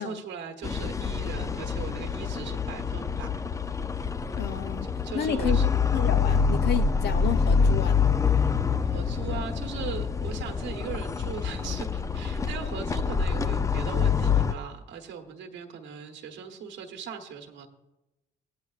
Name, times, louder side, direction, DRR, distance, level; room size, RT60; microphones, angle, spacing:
voice 1, 0.0-3.3 5.0-5.7 8.9-17.7, right 7 dB, 75° right, 1.1 m, -39 dB
sound 1, 0.6-14.5, left 5 dB, 15° left, 0.4 m, -26 dB
voice 2, 4.4-4.9 5.1-5.6 5.9-8.0, left 8 dB, 60° left, 0.6 m, -31 dB
15.5 x 9.5 x 2.4 m
supercardioid pair, 80°, 19 cm